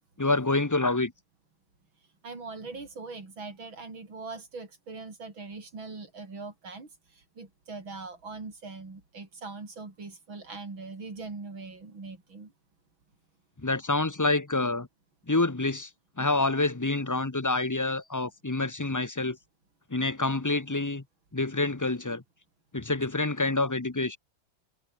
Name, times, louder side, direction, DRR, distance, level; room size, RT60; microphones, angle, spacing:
voice 1, 0.2-1.1 13.6-14.9 15.3-15.9 16.2-19.4 19.9-21.0 21.3-22.2 22.7-24.2, left 2 dB, 20° left, 0.5 m, -27 dB
voice 2, 2.2-12.5, right 3 dB, 80° right, 5.6 m, -41 dB
omnidirectional pair, 2.1 m